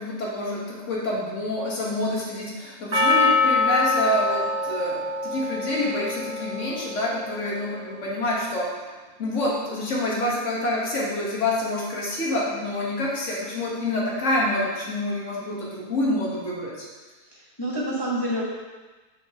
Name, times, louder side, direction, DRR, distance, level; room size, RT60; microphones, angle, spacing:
voice 1, 0.0-8.7 9.2-16.9, left 1 dB, 50° left, -4 dB, 1.6 m, -27 dB
Percussion, 2.9-7.4, left 3 dB, 55° right, 0.4 m, -24 dB
voice 2, 17.3-18.4, right 1 dB, 20° left, -7 dB, 1.0 m, -28 dB
6.3 x 5.8 x 2.9 m, 1.3 s
omnidirectional pair, 1.6 m